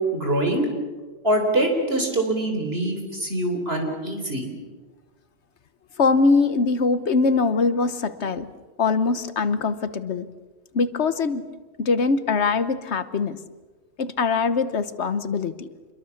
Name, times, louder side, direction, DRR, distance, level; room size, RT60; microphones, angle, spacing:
voice 1, 0.1-0.7 1.2-4.5, right 1 dB, 65° right, 3 dB, 4.1 m, -24 dB
voice 2, 6.0-8.5 8.8-10.3 10.7-11.5 11.8-13.4 14.0-15.7, left 4 dB, 85° left, 12 dB, 1.4 m, -22 dB
27.0 x 22.5 x 7.2 m, 1.3 s
omnidirectional pair, 1.1 m